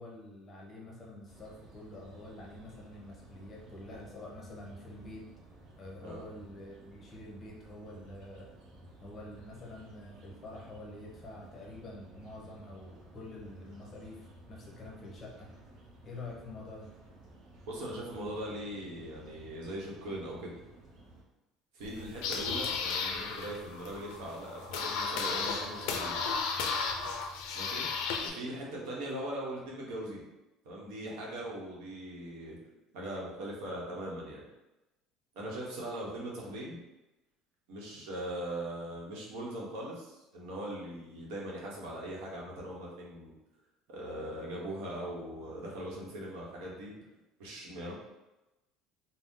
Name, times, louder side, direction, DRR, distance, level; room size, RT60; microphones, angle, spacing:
voice 1, 0.0-5.3 5.8-8.5 9.0-15.5 16.0-16.9, left 2 dB, 30° left, -2 dB, 0.7 m, -47 dB
sound 1, 1.3-21.2, right 1 dB, 55° right, 0.6 m, -55 dB
voice 2, 17.7-20.6 21.7-26.2 27.5-27.8 28.2-30.2 30.6-32.6 32.9-34.4 35.3-36.8 37.7-43.4 43.9-46.9 47.4-47.9, right 1 dB, 90° right, -3 dB, 0.8 m, -40 dB
sound 2, 21.8-28.3, left 5 dB, 80° left, 0.4 m, -34 dB
2.6 x 2.0 x 3.6 m, 1.0 s
cardioid pair, 140°, 0 cm